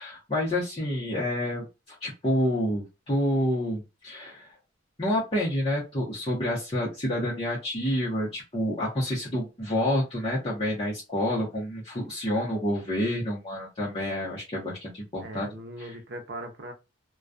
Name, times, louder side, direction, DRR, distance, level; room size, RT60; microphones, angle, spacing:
voice 1, 0.0-4.5 5.0-15.5 15.8-15.9, left 1 dB, 30° left, 0.8 m, -28 dB
voice 2, 15.2-16.7, right 1 dB, 60° right, 0.7 m, -39 dB
2.3 x 2.3 x 2.5 m
head